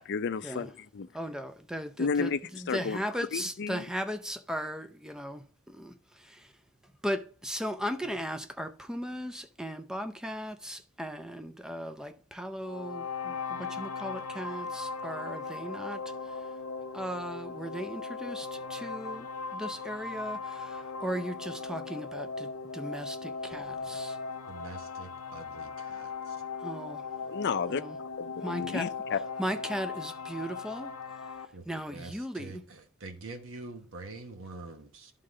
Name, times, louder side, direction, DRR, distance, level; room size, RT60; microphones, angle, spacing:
voice 1, 0.0-1.1 2.0-3.0 3.3-3.8 27.2-27.8 28.2-29.2, left 5 dB, 55° left, 0.4 m, -32 dB
voice 2, 1.1-2.3 2.7-5.9 6.3-6.4 7.0-16.0 16.9-19.3 19.5-24.2 26.6-27.0 27.7-28.0 28.4-28.9 29.4-30.9 31.7-32.6, equal, 5° right, 0.5 m, -37 dB
sound 1, 12.6-31.5, left 4 dB, 90° left, 0.7 m, -38 dB
voice 3, 24.5-26.4 31.5-35.1, right 3 dB, 65° right, 1.1 m, -45 dB
11.5 x 3.8 x 3.7 m
head